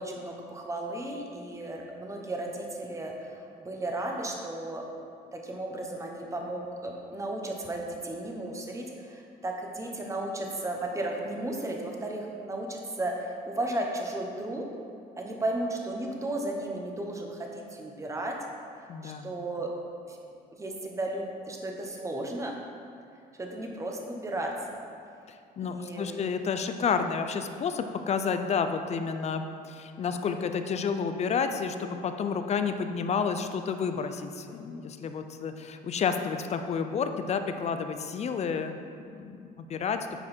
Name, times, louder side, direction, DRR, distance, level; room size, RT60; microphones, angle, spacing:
voice 1, 0.0-4.8 5.3-14.6 15.2-18.3 19.0-19.7 20.1-20.2 20.5-22.6 23.4-24.8 25.6-26.2, right 1 dB, 20° right, 0 dB, 1.2 m, -34 dB
voice 2, 18.9-19.3 25.6-38.8 39.1-40.0, left 6 dB, 40° left, 8 dB, 0.5 m, -30 dB
9.8 x 5.0 x 4.4 m, 2.4 s
cardioid pair, 110°, 17 cm